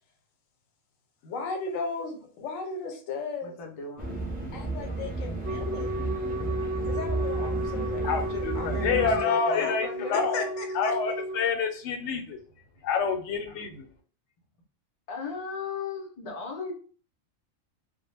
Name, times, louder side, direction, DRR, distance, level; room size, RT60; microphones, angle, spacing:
voice 1, 1.2-3.5 4.5-5.9 6.9-9.7 10.1-10.9, left 4 dB, 85° left, 4 dB, 1.0 m, -36 dB
voice 2, 3.4-4.1 8.1-8.2 9.0-10.2 12.0-12.1 13.5-13.6 15.1-16.8, left 4 dB, 45° left, 1 dB, 0.5 m, -37 dB
sound 1, 4.0-9.2, right 2 dB, 15° right, 0.3 m, -32 dB
Wind instrument woodwind instrument, 5.4-11.5, right 1 dB, 65° right, 0.7 m, -33 dB
voice 3, 8.0-10.5 10.7-12.4 12.8-13.9, left 5 dB, 70° left, 5 dB, 0.8 m, -28 dB
2.2 x 2.1 x 3.1 m, 0.41 s
omnidirectional pair, 1.3 m